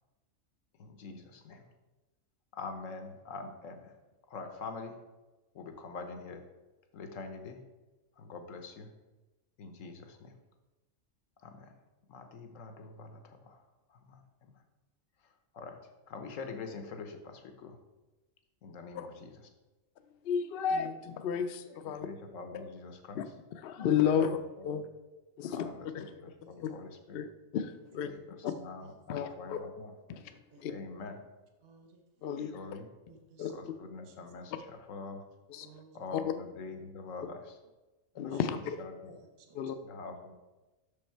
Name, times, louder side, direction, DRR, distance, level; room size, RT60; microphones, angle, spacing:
voice 1, 0.8-1.6 2.5-3.9 4.3-5.0 5.5-6.4 6.9-7.6 8.2-8.9 9.6-10.3 11.4-11.7 12.1-14.5 15.2-15.8 16.1-17.8 18.6-19.5 22.0-23.2 24.0-24.8 25.4-25.9 26.2-27.2 28.0-29.9 30.7-31.2 32.4-32.9 33.5-35.2 35.9-37.6 38.2-39.2 39.8-40.3, left 4 dB, 80° left, 6 dB, 1.2 m, -45 dB
voice 2, 20.2-22.1 23.1-23.2 23.6-24.4 24.6-24.8 25.4-25.6 25.9-26.0 26.6-26.7 27.1-27.3 27.5-28.1 28.4-28.5 29.1-29.6 30.1-30.2 30.6-30.7 32.2-32.6 33.4-33.5 35.5-35.7 36.1-36.3 38.2-38.8 39.5-39.8, left 8 dB, 60° left, 9 dB, 0.6 m, -32 dB
voice 3, 30.5-30.8 31.6-32.0 33.1-33.6 34.1-34.2 35.6-36.1 38.1-38.4 39.4-39.8, right 5 dB, 55° right, 4 dB, 1.0 m, -58 dB
6.1 x 5.4 x 4.4 m, 1.1 s
omnidirectional pair, 1.3 m